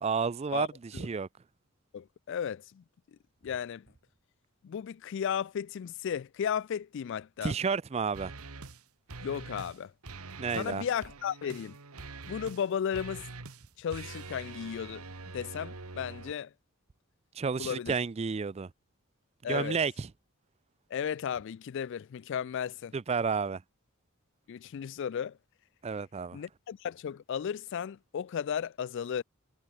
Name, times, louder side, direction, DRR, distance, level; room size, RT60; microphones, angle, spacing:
voice 1, 0.0-1.3 7.4-8.3 10.4-10.8 17.4-18.7 19.5-20.1 22.9-23.6 25.8-26.4, right 5 dB, 30° right, 0.3 m, -31 dB
voice 2, 1.9-2.8 3.4-3.9 4.6-7.5 9.2-9.9 10.5-11.8 12.3-13.3 13.8-15.0 15.3-16.5 17.6-17.9 19.4-19.8 20.9-22.9 24.5-25.4 26.3-29.2, left 8 dB, 55° left, 0.3 m, -34 dB
sound 1, 8.1-8.8 9.1-9.8 10.0-16.3, right 3 dB, 85° right, 1.7 m, -45 dB
head